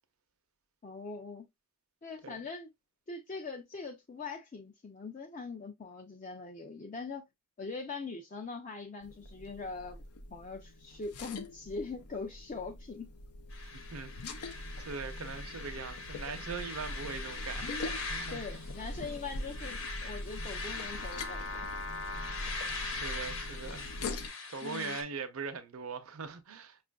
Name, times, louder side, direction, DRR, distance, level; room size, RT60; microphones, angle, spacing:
voice 1, 0.8-1.5 2.0-2.7 3.1-7.2 7.6-10.0 10.3-13.1 18.3-21.7 24.6-25.0, left 4 dB, 35° left, 0.4 m, -42 dB
sound 1, 9.0-24.3, left 2 dB, 90° left, 0.6 m, -43 dB
sound 2, 13.5-25.0, left 3 dB, 70° left, 1.0 m, -41 dB
voice 2, 13.7-14.1 14.8-18.4 22.8-23.9 24.5-26.8, right 5 dB, 75° right, 0.6 m, -41 dB
5.6 x 2.4 x 2.2 m
head